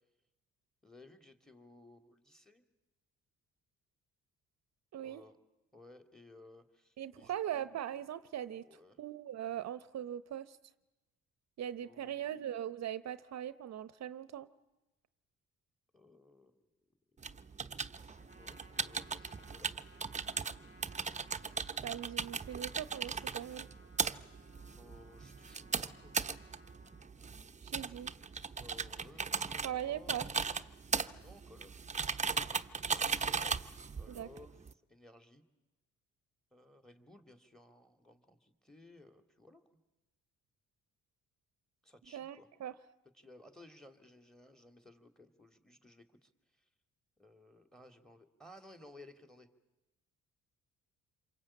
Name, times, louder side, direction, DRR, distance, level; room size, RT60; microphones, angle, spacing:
voice 1, 0.8-2.6 5.0-5.4 5.7-7.4 8.6-9.0 11.8-12.4 15.9-16.7 17.3-17.4 18.0-19.7 24.6-26.1 28.5-30.3 31.2-31.9 34.0-34.5 34.9-35.4 36.5-39.6 41.8-42.5 43.1-46.3 46.6-46.7 47.2-49.5, left 1 dB, ahead, 8 dB, 2.8 m, -58 dB
voice 2, 4.9-5.2 7.0-10.6 11.6-14.5 21.8-23.7 27.6-28.1 29.6-30.3 34.1-34.3 42.1-42.8, right 10 dB, 60° right, 14 dB, 0.8 m, -40 dB
sound 1, 17.2-34.7, right 5 dB, 25° right, 0.9 m, -38 dB
Trumpet, 18.1-27.1, left 1 dB, 55° left, 7.2 m, -62 dB
27.5 x 23.5 x 8.9 m, 1.1 s
cardioid pair, 90°, 30 cm